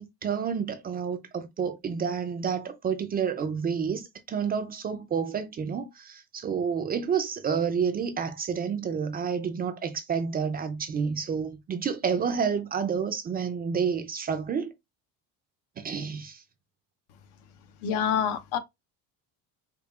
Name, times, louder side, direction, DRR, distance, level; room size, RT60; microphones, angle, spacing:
voice 1, 0.0-14.7 15.8-16.4, right 6 dB, 25° right, 0.3 m, -29 dB
voice 2, 17.8-18.6, left 8 dB, 80° left, 0.8 m, -26 dB
5.2 x 2.3 x 2.3 m
cardioid pair, 145°, 39 cm